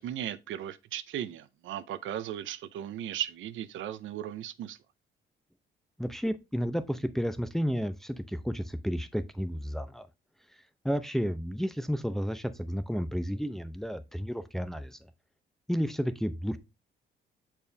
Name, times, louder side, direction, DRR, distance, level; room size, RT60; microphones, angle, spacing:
voice 1, 0.0-4.8, right 11 dB, 75° right, 0.6 m, -36 dB
voice 2, 6.0-10.1 10.8-15.0 15.7-16.6, equal, ahead, 0.6 m, -32 dB
6.9 x 4.5 x 3.3 m
cardioid pair, 90°, 20 cm